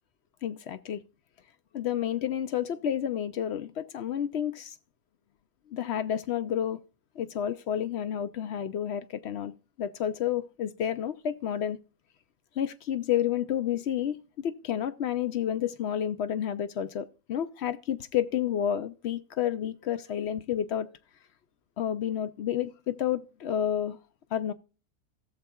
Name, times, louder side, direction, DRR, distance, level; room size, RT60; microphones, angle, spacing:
voice 1, 0.4-1.0 1.7-4.8 5.7-6.8 7.2-9.5 9.8-11.8 12.6-20.9 21.8-24.0 24.3-24.5, left 10 dB, 65° left, 0.7 m, -30 dB
17.0 x 6.8 x 2.3 m
omnidirectional pair, 1.5 m